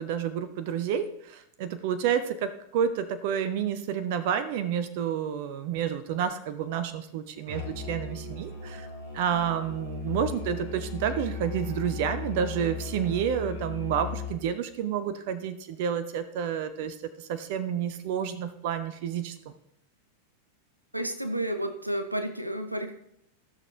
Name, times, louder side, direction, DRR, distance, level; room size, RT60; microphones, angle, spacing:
voice 1, 0.0-8.9 9.1-19.4, right 8 dB, 50° right, 11 dB, 0.7 m, -30 dB
Musical instrument, 7.5-14.5, left 5 dB, 75° left, 2.5 m, -37 dB
voice 2, 20.9-22.9, right 1 dB, 85° right, 8 dB, 0.7 m, -31 dB
14.0 x 6.4 x 3.3 m, 0.77 s
figure-of-eight pair, 90°, 0 cm